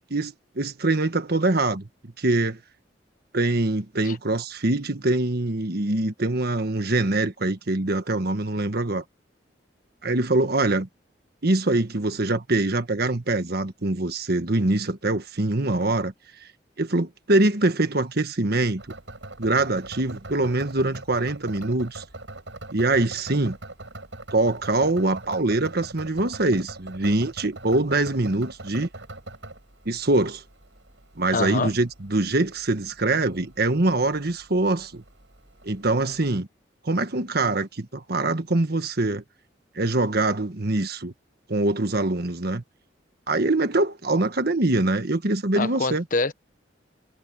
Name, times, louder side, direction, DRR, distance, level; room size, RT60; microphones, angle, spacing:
voice 1, 0.1-1.9 2.2-2.6 3.3-9.0 10.0-10.9 11.4-16.1 16.8-18.8 19.4-22.0 22.7-23.6 24.3-28.9 29.8-30.4 31.2-35.0 35.6-36.5 36.8-39.2 39.7-41.1 41.5-42.6 43.3-46.0, right 2 dB, 60° right, 1.5 m, -24 dB
sound 1, 18.8-36.3, right 2 dB, 80° right, 7.7 m, -43 dB
voice 2, 31.3-31.7 45.6-46.3, left 3 dB, 50° left, 1.2 m, -25 dB
head